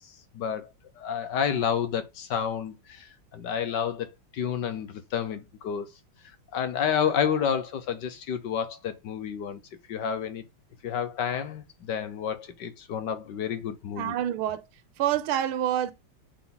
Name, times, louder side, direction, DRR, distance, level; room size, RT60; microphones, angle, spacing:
voice 1, 0.3-0.7 1.0-5.9 6.5-9.6 9.9-10.4 10.8-14.1, left 8 dB, 65° left, 1.3 m, -30 dB
voice 2, 14.0-14.7 15.0-15.9, right 11 dB, 80° right, 1.5 m, -27 dB
8.3 x 3.8 x 3.9 m
omnidirectional pair, 2.3 m